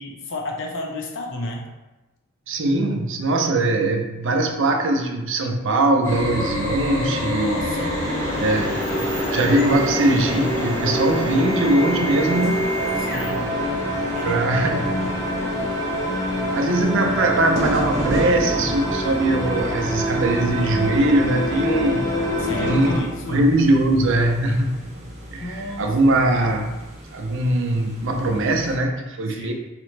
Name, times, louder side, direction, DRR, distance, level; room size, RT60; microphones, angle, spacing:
voice 1, 0.0-1.6 7.3-8.1 13.0-13.5 14.1-14.4 22.4-23.5 25.4-26.0 29.3-29.5, left 2 dB, 60° left, 0 dB, 0.7 m, -32 dB
voice 2, 2.5-7.6 8.4-8.8 9.3-12.7 14.2-15.5 16.5-22.0 22.6-23.0 23.3-24.8 25.3-26.7 27.1-29.5, right 2 dB, 60° right, 4 dB, 0.5 m, -21 dB
sound 1, 6.0-23.0, equal, 15° left, 1.1 m, -25 dB
sound 2, 8.3-13.6, right 1 dB, 80° right, 0.9 m, -33 dB
sound 3, 12.4-28.8, right 1 dB, 35° right, 0.8 m, -35 dB
4.1 x 2.9 x 3.1 m, 1.1 s
head